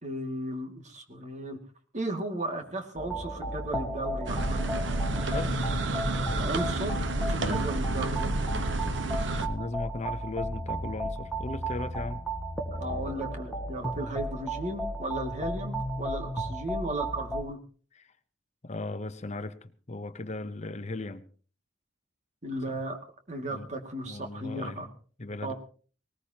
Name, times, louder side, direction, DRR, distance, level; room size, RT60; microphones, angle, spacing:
voice 1, 0.0-1.6 1.9-4.6 6.4-8.3 12.8-17.6 22.4-23.0 23.3-24.9 25.4-25.5, right 1 dB, 40° right, 2.3 m, -35 dB
sound 1, 3.0-17.4, right 1 dB, 5° left, 1.7 m, -34 dB
sound 2, 4.3-9.5, right 2 dB, 70° right, 1.2 m, -30 dB
voice 2, 5.2-5.6 7.4-7.7 9.3-12.3 17.9-18.1 18.6-21.2 22.7-22.8 23.5-23.7 24.0-24.8 25.2-25.5, left 2 dB, 35° left, 0.8 m, -37 dB
19.5 x 19.5 x 2.9 m
head